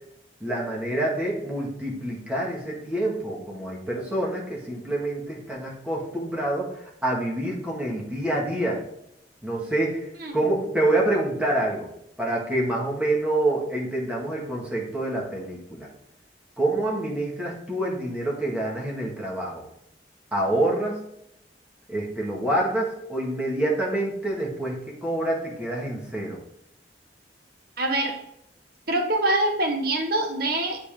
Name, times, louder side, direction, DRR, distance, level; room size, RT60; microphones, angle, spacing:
voice 1, 0.4-6.7 7.0-8.8 9.4-11.9 12.2-15.9 16.6-19.6 20.3-21.0 21.9-26.4, right 1 dB, 10° right, -4 dB, 1.8 m, -27 dB
voice 2, 27.8-28.2 28.9-30.8, right 1 dB, 55° right, 2 dB, 1.3 m, -24 dB
8.4 x 5.1 x 3.7 m, 0.78 s
head